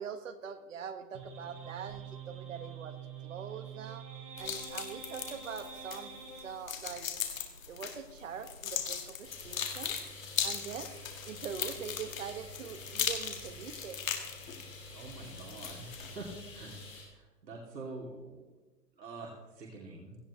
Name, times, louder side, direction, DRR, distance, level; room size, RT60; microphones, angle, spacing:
voice 1, 0.0-3.0 3.2-4.0 4.4-6.1 6.4-7.1 7.7-10.0 10.4-10.9 11.2-14.0, right 7 dB, 50° right, 9 dB, 1.4 m, -43 dB
sound 1, 1.1-6.6, right 6 dB, 30° right, 4.4 m, -46 dB
sound 2, 4.4-16.2, left 7 dB, 55° left, 2.0 m, -39 dB
sound 3, 9.2-17.0, left 2 dB, 10° left, 2.7 m, -49 dB
voice 2, 14.9-16.3 16.5-16.8 17.1-18.5 19.0-20.2, right 3 dB, 90° right, -2 dB, 3.0 m, -46 dB
17.0 x 15.0 x 3.2 m, 1.2 s
hypercardioid pair, 165°, 49 cm